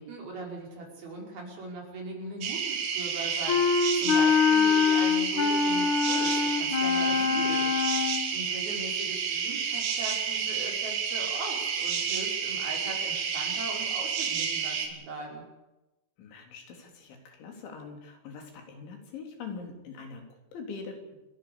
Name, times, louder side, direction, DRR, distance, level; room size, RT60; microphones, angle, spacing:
voice 1, 0.0-15.4, right 2 dB, 55° right, 0 dB, 7.2 m, -40 dB
sound 1, 2.4-14.9, right 6 dB, 85° right, 4.9 m, -30 dB
Wind instrument woodwind instrument, 3.5-8.3, left 6 dB, 55° left, 2.6 m, -24 dB
voice 2, 7.0-7.5 16.2-21.2, left 4 dB, 85° left, 3 dB, 5.9 m, -43 dB
29.0 x 12.0 x 8.7 m, 1.0 s
omnidirectional pair, 5.2 m